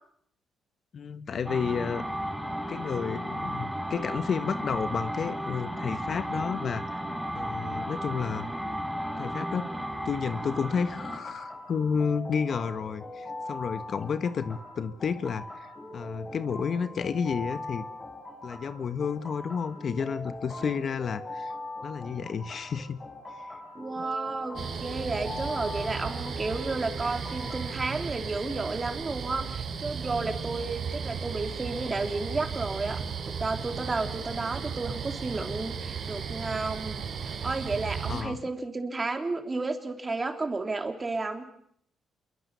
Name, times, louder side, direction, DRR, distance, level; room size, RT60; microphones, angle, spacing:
voice 1, 0.9-2.1 2.7-7.0 7.3-8.5 9.2-9.7 10.0-17.9 18.4-21.5 21.8-23.0 23.3-23.5 38.1-38.4, left 6 dB, 50° left, 12 dB, 1.3 m, -31 dB
sound 1, 1.5-11.3, equal, ahead, 5.1 m, -34 dB
sound 2, 10.6-27.7, left 2 dB, 30° left, 7.6 m, -41 dB
voice 2, 23.8-41.5, right 3 dB, 25° right, 6 dB, 3.5 m, -32 dB
sound 3, 24.5-38.2, right 6 dB, 55° right, 3.8 m, -35 dB
27.5 x 23.5 x 7.0 m, 0.69 s
cardioid pair, 90°, 0 cm